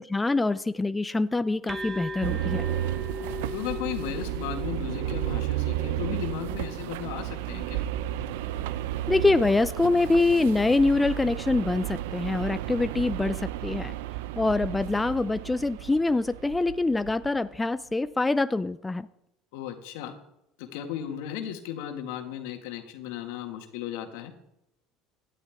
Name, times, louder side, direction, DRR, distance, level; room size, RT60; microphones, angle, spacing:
voice 1, 0.0-2.6 9.1-14.0 14.4-19.1, left 2 dB, 10° left, 0.4 m, -25 dB
sound 1, 1.7-9.2, left 2 dB, 25° right, 1.3 m, -40 dB
sound 2, 2.2-17.4, right 14 dB, 85° right, 0.5 m, -33 dB
voice 2, 3.5-7.8 19.5-20.2 20.6-24.3, left 10 dB, 80° left, 1.9 m, -35 dB
17.0 x 11.0 x 3.6 m
supercardioid pair, 105°, 0 cm